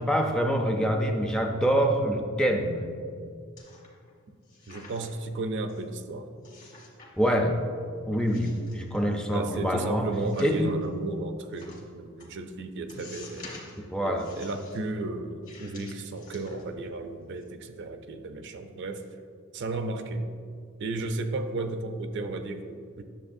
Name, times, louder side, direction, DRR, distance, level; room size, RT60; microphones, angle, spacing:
voice 1, 0.0-2.9 7.2-7.6 8.1-10.0 10.4-10.7 13.8-14.3, equal, 5° left, 2 dB, 0.4 m, -25 dB
sound 1, 3.6-4.1 4.4-5.3 5.7-5.8 6.4-7.1 7.4-7.9 8.2-9.4 10.1-10.9 11.5-11.8 12.2-12.3 12.9-13.8 14.2-14.8 15.4-16.9 17.2-17.4, left 3 dB, 40° left, 1.5 m, -49 dB
voice 2, 4.7-6.3 9.3-13.6 14.0-19.0 19.5-20.3 20.8-23.0, right 2 dB, 55° right, 8 dB, 0.5 m, -34 dB
9.6 x 6.8 x 2.6 m, 2.2 s
head